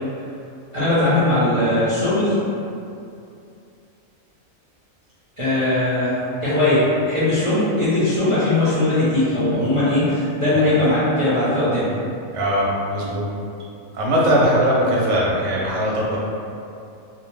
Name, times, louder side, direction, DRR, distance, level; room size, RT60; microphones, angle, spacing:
voice 1, 0.7-2.4 5.4-11.9, left 1 dB, 35° right, -13 dB, 0.5 m, -19 dB
voice 2, 12.3-13.3 13.9-16.2, equal, 65° right, -4 dB, 0.8 m, -20 dB
2.5 x 2.1 x 3.1 m, 2.6 s
omnidirectional pair, 1.5 m